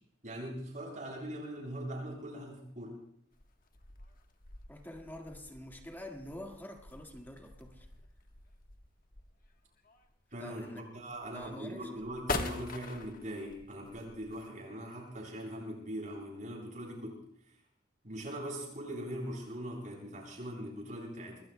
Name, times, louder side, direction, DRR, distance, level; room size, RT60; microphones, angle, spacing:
voice 1, 0.2-3.0 10.3-17.2 18.0-21.4, right 1 dB, 45° right, -1 dB, 6.9 m, -41 dB
sound 1, 3.3-14.5, left 3 dB, 50° left, 1.2 m, -44 dB
voice 2, 4.7-7.9 10.4-10.8 11.3-12.1, left 1 dB, 10° left, 3 dB, 1.7 m, -46 dB
26.5 x 20.0 x 2.2 m, 0.68 s
head